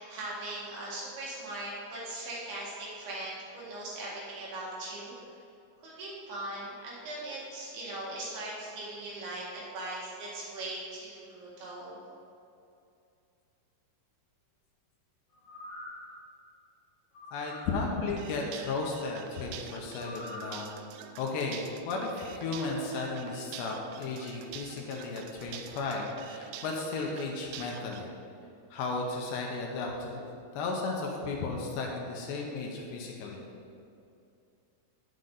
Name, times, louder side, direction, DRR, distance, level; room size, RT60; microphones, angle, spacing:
voice 1, 0.0-5.1 5.8-12.0, right 2 dB, 65° right, -5 dB, 3.4 m, -39 dB
sound 1, 15.3-16.1 17.1-17.8 19.9-20.6 21.1-21.2, left 2 dB, 45° left, 1.9 m, -45 dB
voice 2, 17.3-20.7 21.2-28.1 28.7-33.4, left 3 dB, 75° left, 0 dB, 2.9 m, -34 dB
sound 2, 18.1-28.0, right 8 dB, 85° right, 3.0 m, -46 dB
11.0 x 7.6 x 4.0 m, 2.6 s
omnidirectional pair, 5.4 m